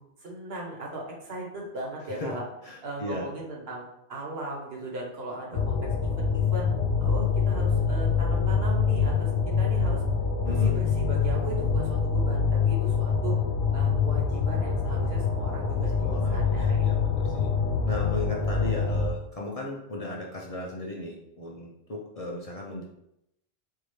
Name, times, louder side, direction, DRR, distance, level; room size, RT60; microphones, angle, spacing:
voice 1, 0.0-2.4 2.8-3.8 4.1-5.8 6.2-6.7 7.0-9.3 9.6-10.0 10.4-13.3 13.7-16.0 16.3-17.1, right 2 dB, 70° right, -2 dB, 1.3 m, -38 dB
voice 2, 2.6-3.3 10.3-10.7 16.0-17.5 17.9-22.8, left 2 dB, 45° left, -2 dB, 0.6 m, -36 dB
sound 1, 5.5-19.1, left 5 dB, 85° left, 0.8 m, -25 dB
4.7 x 2.6 x 3.1 m, 0.80 s
omnidirectional pair, 1.1 m